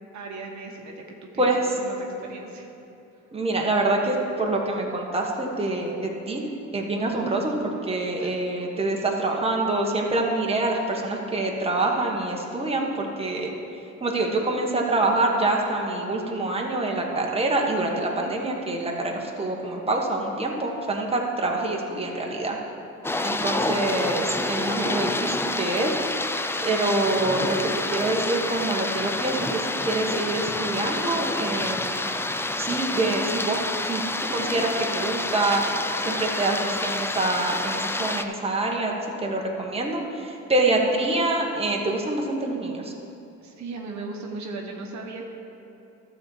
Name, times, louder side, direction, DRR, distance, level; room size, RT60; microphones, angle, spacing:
voice 1, 0.1-1.5 1.8-2.7 8.2-8.3 43.4-45.2, right 3 dB, 65° right, 2 dB, 1.1 m, -37 dB
voice 2, 1.4-1.7 3.3-13.5 14.0-22.6 23.2-25.9 26.6-32.1 32.6-33.6 33.8-35.6 36.0-38.9 39.2-42.9, right 2 dB, 20° right, 0 dB, 1.3 m, -26 dB
sound 1, 23.0-38.2, left 2 dB, 10° left, 0.4 m, -28 dB
12.0 x 4.3 x 7.2 m, 2.8 s
cardioid pair, 90°, 30 cm